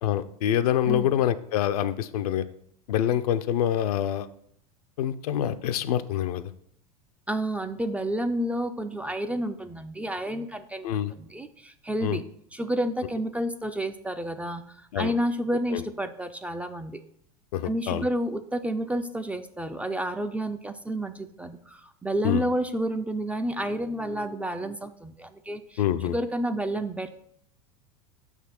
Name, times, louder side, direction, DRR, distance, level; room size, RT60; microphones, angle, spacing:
voice 1, 0.0-2.4 2.9-4.3 5.0-6.5 10.8-11.1 12.0-12.2 14.9-15.1 15.7-15.8 17.5-18.1 22.2-22.4 25.8-26.2, left 10 dB, 70° left, 11 dB, 0.5 m, -26 dB
voice 2, 7.3-10.9 11.2-12.2 12.5-17.0 17.6-25.8 26.1-27.2, right 1 dB, 5° right, 9 dB, 0.3 m, -30 dB
6.1 x 3.6 x 5.7 m, 0.67 s
hypercardioid pair, 95°, 20 cm